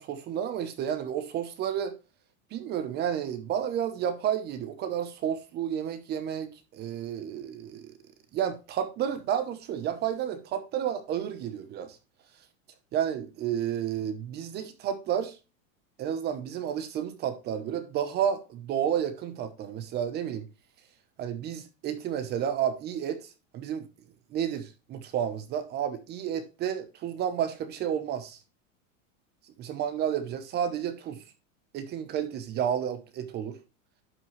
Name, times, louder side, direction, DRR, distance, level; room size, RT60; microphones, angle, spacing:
voice 1, 0.0-1.9 2.5-7.9 8.3-12.0 12.9-15.4 16.0-20.5 21.2-23.9 24.3-28.4 29.6-31.2 31.7-33.6, right 9 dB, 25° right, 0.8 m, -31 dB
11.0 x 5.7 x 3.1 m
supercardioid pair, 160°, 41 cm